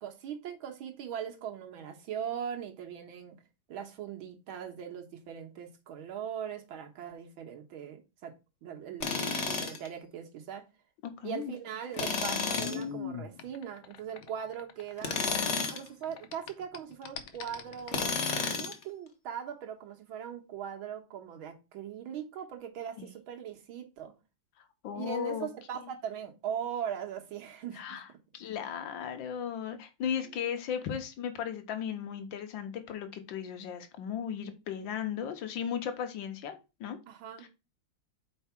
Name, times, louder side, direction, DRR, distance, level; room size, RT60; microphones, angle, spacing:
voice 1, 0.0-3.4 3.7-8.3 8.6-10.6 11.2-15.2 15.7-18.2 18.6-24.1 24.9-28.0 30.2-30.5 37.1-37.5, right 8 dB, 80° right, 2.0 m, -40 dB
Tools, 9.0-9.9 11.9-12.8 15.0-15.9 17.9-18.8, left 4 dB, 45° left, 1.0 m, -31 dB
voice 2, 11.0-11.5 15.4-15.7 23.0-23.1 24.8-25.5 25.7-25.9 27.8-28.1 28.3-37.0 37.4-37.5, left 8 dB, 70° left, 1.7 m, -36 dB
sound 1, 11.4-15.8 16.0-18.2, left 8 dB, 90° left, 1.6 m, -42 dB
4.6 x 4.6 x 5.8 m
omnidirectional pair, 2.2 m